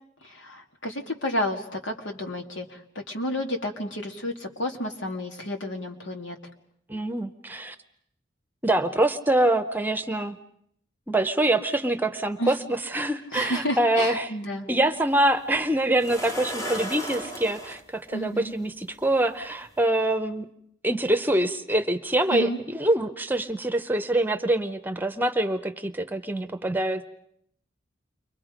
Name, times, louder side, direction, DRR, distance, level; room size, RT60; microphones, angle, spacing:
voice 1, 0.3-6.4 12.4-12.5 13.3-14.7 18.1-18.5 22.3-22.6, left 1 dB, 85° left, 4 dB, 2.5 m, -31 dB
voice 2, 6.9-7.8 8.6-10.4 11.1-14.3 14.7-20.5 20.8-27.0, right 1 dB, 10° right, 9 dB, 0.8 m, -25 dB
sound 1, 14.9-15.0 16.0-17.8 19.0-19.1 19.7-19.8, equal, 15° left, 1.4 m, -35 dB
29.5 x 23.5 x 5.1 m, 0.71 s
head